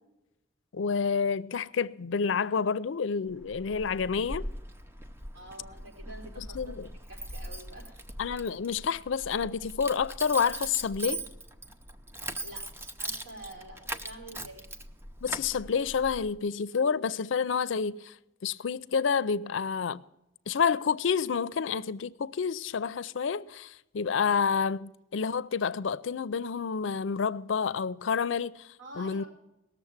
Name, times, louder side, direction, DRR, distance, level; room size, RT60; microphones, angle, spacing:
voice 1, 0.7-4.5 6.4-6.9 8.2-11.3 15.2-18.1 18.4-20.0 20.5-28.7 29.0-29.2, left 6 dB, 70° left, 0.5 m, -29 dB
Keys jangling, 3.3-16.4, right 1 dB, 10° right, 0.6 m, -41 dB
voice 2, 5.3-6.7 7.1-8.0 12.4-14.6 28.8-29.3, right 1 dB, 75° right, 4.5 m, -47 dB
18.5 x 7.0 x 7.3 m
head